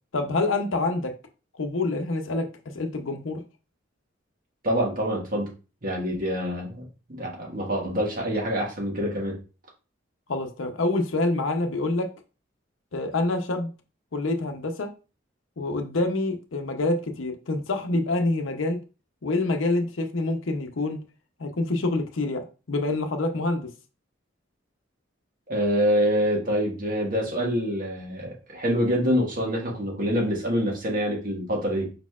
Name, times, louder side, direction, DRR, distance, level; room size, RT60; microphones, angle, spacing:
voice 1, 0.1-1.1 1.6-2.5 2.7-3.4 10.3-12.1 12.9-13.7 14.1-14.9 15.6-18.8 19.2-21.0 21.4-23.7, left 2 dB, 90° left, 0.7 m, -26 dB
voice 2, 4.6-5.5 5.8-9.4 25.5-32.0, equal, 45° right, 1.6 m, -26 dB
4.9 x 4.2 x 2.4 m
head